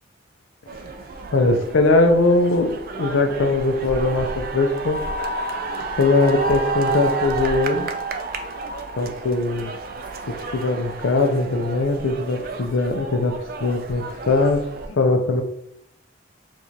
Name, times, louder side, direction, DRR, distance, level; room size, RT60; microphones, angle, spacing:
sound 1, 0.7-14.9, right 3 dB, 50° right, 0.3 m, -31 dB
voice 1, 1.3-5.0 6.0-7.9 9.0-9.7 10.3-15.4, left 2 dB, 85° left, 6 dB, 0.5 m, -20 dB
4.6 x 2.4 x 2.8 m, 0.75 s
head